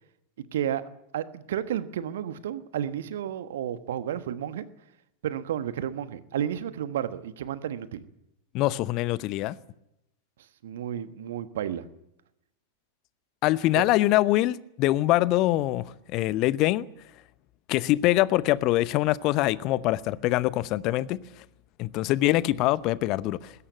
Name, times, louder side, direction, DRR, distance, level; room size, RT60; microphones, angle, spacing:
voice 1, 0.5-0.8 1.1-4.7 5.2-8.0 10.6-11.9 13.7-13.9, right 10 dB, 60° right, 1.3 m, -32 dB
voice 2, 8.5-9.6 13.4-15.8 16.1-16.8 17.7-21.2 21.8-23.5, left 16 dB, 40° left, 0.8 m, -24 dB
20.5 x 17.0 x 9.4 m
figure-of-eight pair, 90°, 0 cm